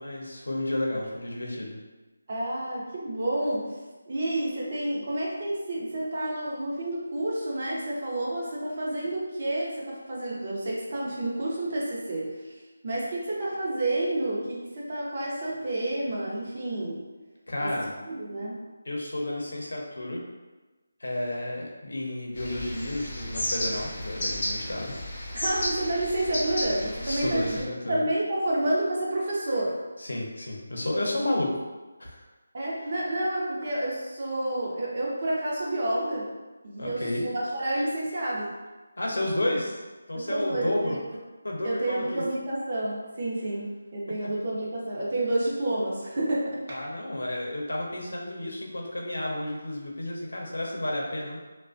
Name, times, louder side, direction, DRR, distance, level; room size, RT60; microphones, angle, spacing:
voice 1, 0.0-1.8 17.5-17.9 18.8-20.2 21.0-24.9 27.0-28.0 30.0-31.5 32.0-32.3 36.8-37.3 39.0-39.8 40.1-41.0 41.4-42.2 46.7-51.4, left 1 dB, 90° left, -2 dB, 0.6 m, -31 dB
voice 2, 2.3-3.8 4.1-12.5 12.8-17.0 17.6-17.7 18.1-18.6 25.3-29.8 32.5-36.3 36.6-38.5 40.1-41.0 41.6-46.8, right 1 dB, 35° right, -5 dB, 0.5 m, -29 dB
sound 1, 22.4-27.6, left 1 dB, 40° left, 0.6 m, -33 dB
2.3 x 2.1 x 2.4 m, 1.2 s
figure-of-eight pair, 175°, 0 cm